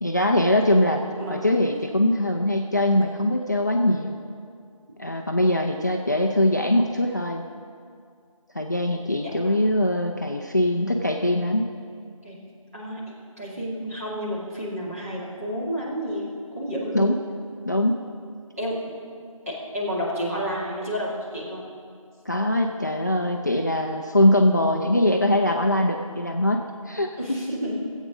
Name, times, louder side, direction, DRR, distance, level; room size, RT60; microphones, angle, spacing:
voice 1, 0.0-1.0 1.3-4.2 5.0-7.4 8.5-11.7 16.9-17.2 17.7-18.0 22.3-27.4, left 1 dB, 30° left, 2 dB, 0.5 m, -22 dB
voice 2, 9.2-9.5 12.2-12.4 12.7-17.2 18.6-18.9 19.5-21.6 27.2-27.8, equal, 25° right, -7 dB, 2.4 m, -31 dB
15.5 x 8.2 x 5.1 m, 2.2 s
figure-of-eight pair, 175°, 18 cm